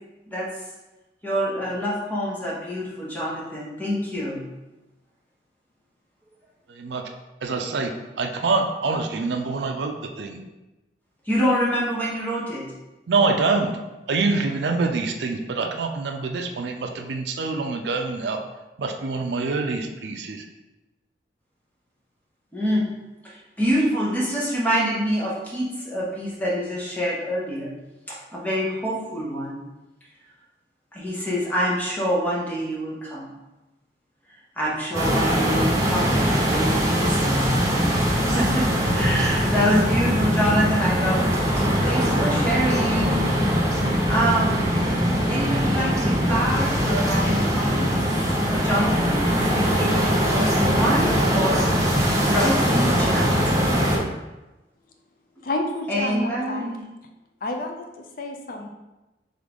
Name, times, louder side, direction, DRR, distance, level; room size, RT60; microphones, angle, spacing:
voice 1, 1.2-4.4 11.3-12.6 22.5-22.9 23.2-27.7 28.1-29.6 30.9-33.3 34.6-43.3 44.1-44.6 45.3-47.9 48.5-50.0 50.3-51.6 52.2-53.6 55.9-56.8, equal, 10° left, -6 dB, 1.0 m, -26 dB
voice 2, 6.7-7.0 7.4-10.4 13.1-13.8 14.1-18.4 18.8-20.4, right 3 dB, 75° right, 4 dB, 0.5 m, -25 dB
sound 1, 34.9-54.0, equal, 20° right, 0.7 m, -21 dB
voice 3, 55.4-56.6 57.4-58.7, left 1 dB, 50° left, 4 dB, 0.4 m, -30 dB
3.7 x 3.6 x 3.5 m, 1.1 s
head